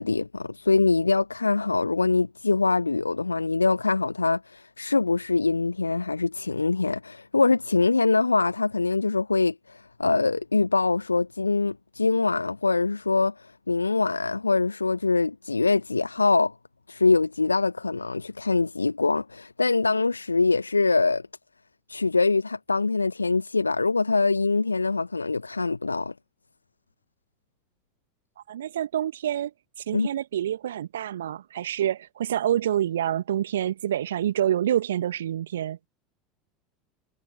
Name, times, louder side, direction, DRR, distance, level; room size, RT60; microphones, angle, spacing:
voice 1, 0.0-16.5 16.9-21.2 21.9-26.1 29.9-30.1, left 3 dB, 85° left, 1.1 m, -24 dB
voice 2, 28.5-29.5 29.8-35.8, right 11 dB, 70° right, 1.6 m, -27 dB
figure-of-eight pair, 75°, 0 cm